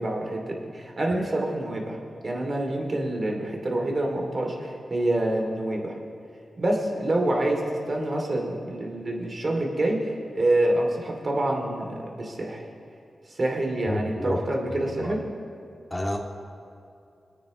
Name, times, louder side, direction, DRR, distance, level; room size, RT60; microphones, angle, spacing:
voice 1, 0.0-2.0 2.2-5.9 6.6-12.6 13.3-15.2, right 1 dB, 50° right, 0 dB, 2.7 m, -27 dB
voice 2, 13.9-14.4 15.0-15.1 15.9-16.2, left 1 dB, 25° left, 0 dB, 2.2 m, -29 dB
22.5 x 9.2 x 3.1 m, 2.6 s
cardioid pair, 45°, 0 cm